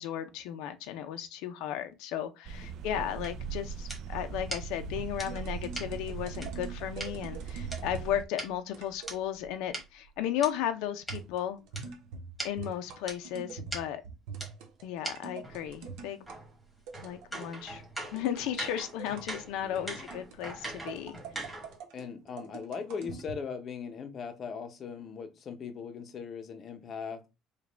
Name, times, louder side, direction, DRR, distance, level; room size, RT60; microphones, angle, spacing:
voice 1, 0.0-11.6 12.4-14.0 14.8-16.2 17.0-17.8 18.1-21.2, left 10 dB, 85° left, 0.5 m, -35 dB
sound 1, 2.4-8.2, right 7 dB, 50° right, 0.3 m, -41 dB
sound 2, 3.2-7.1 7.7-10.5 11.1-11.2 11.7-11.8 12.1-12.2 12.4-12.5 13.1-13.2 13.7-13.8 14.4-14.5 15.0-15.1 15.4-21.8, right 1 dB, ahead, 1.2 m, -42 dB
sound 3, 4.8-8.1 8.7-9.2 11.1-16.4 16.9-17.5 18.0-19.3 19.8-23.4, right 5 dB, 85° right, 1.0 m, -44 dB
voice 2, 19.6-20.1 21.9-27.3, left 6 dB, 35° left, 0.6 m, -40 dB
4.9 x 2.3 x 3.3 m
cardioid pair, 165°, 0 cm